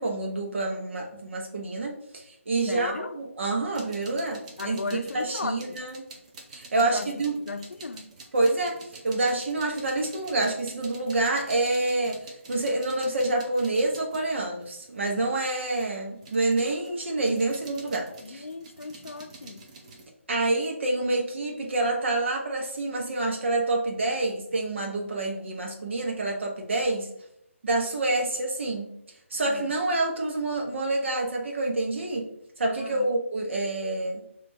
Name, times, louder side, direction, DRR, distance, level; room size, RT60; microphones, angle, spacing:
voice 1, 0.0-6.0 6.5-7.4 8.3-8.8 9.0-18.5 20.3-27.1 27.6-28.9 29.3-32.3 32.6-34.2, right 2 dB, 60° right, 1.3 m, -27 dB
voice 2, 2.7-3.2 4.6-5.8 6.8-8.1 18.2-19.7 29.5-29.7 32.8-33.1, left 4 dB, 70° left, 0.5 m, -36 dB
sound 1, 3.8-15.0 15.4-20.0, right 3 dB, 30° right, 0.9 m, -48 dB
6.1 x 3.0 x 2.9 m
figure-of-eight pair, 155°, 7 cm